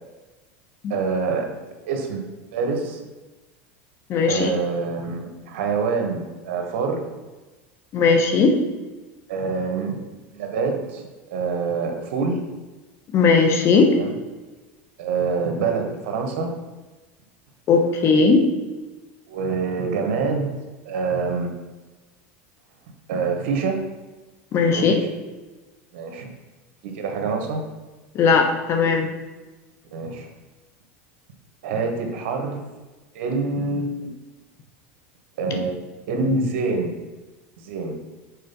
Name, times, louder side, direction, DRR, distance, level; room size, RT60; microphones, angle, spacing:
voice 1, 0.9-1.5 1.9-2.3 2.5-3.0 4.3-7.0 9.3-10.0 10.3-12.4 13.9-14.1 15.0-16.5 19.3-20.5 20.8-21.5 23.1-23.8 24.7-25.1 25.9-26.3 26.8-27.6 29.9-30.3 31.6-32.6 33.1-33.9 35.4-35.7 36.1-37.0 37.6-38.0, right 4 dB, 75° right, 3 dB, 1.4 m, -25 dB
voice 2, 4.1-4.5 7.9-8.5 13.1-13.9 17.7-18.4 24.5-25.0 28.1-29.1, left 4 dB, 40° left, 4 dB, 1.2 m, -17 dB
6.5 x 4.2 x 5.4 m, 1.2 s
supercardioid pair, 125°, 7 cm